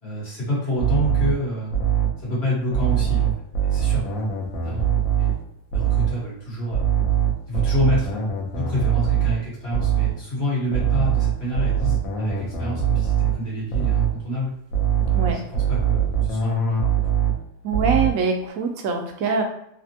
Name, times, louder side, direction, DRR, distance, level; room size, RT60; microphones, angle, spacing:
voice 1, 0.0-1.7 2.2-3.3 3.6-4.3 4.6-4.9 5.2-5.3 5.7-6.8 7.5-14.5 15.0-16.9, left 1 dB, 50° left, -6 dB, 1.5 m, -28 dB
sound 1, 0.8-2.2 2.7-5.5 5.7-6.2 6.7-10.2 10.7-13.4 13.7-14.2 14.7-17.5 17.7-18.2, right 8 dB, 85° left, 1.1 m, -22 dB
voice 2, 17.6-19.4, right 4 dB, 85° right, 3 dB, 1.0 m, -23 dB
3.4 x 2.1 x 2.7 m, 0.78 s
omnidirectional pair, 1.4 m